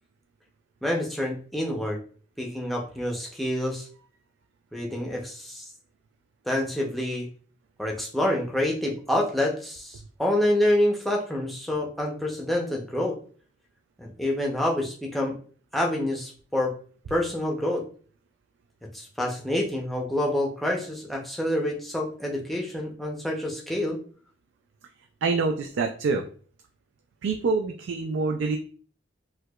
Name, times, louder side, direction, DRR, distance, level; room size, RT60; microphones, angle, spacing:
voice 1, 0.8-2.0 2.4-3.9 4.7-5.7 6.5-7.3 7.8-13.2 14.0-15.3 15.7-16.7 17.1-17.8 18.9-24.0, left 1 dB, ahead, -1 dB, 0.5 m, -27 dB
voice 2, 25.2-26.3 27.2-28.6, right 4 dB, 75° right, 4 dB, 0.3 m, -26 dB
4.5 x 2.2 x 2.2 m, 0.43 s
head